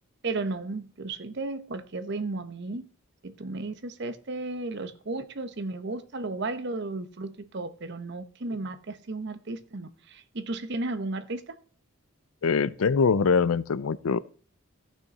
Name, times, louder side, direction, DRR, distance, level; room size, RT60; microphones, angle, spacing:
voice 1, 0.2-2.8 3.2-11.6, right 2 dB, 55° right, 0.9 m, -34 dB
voice 2, 12.4-14.2, left 5 dB, 85° left, 0.5 m, -23 dB
14.5 x 5.9 x 4.0 m
head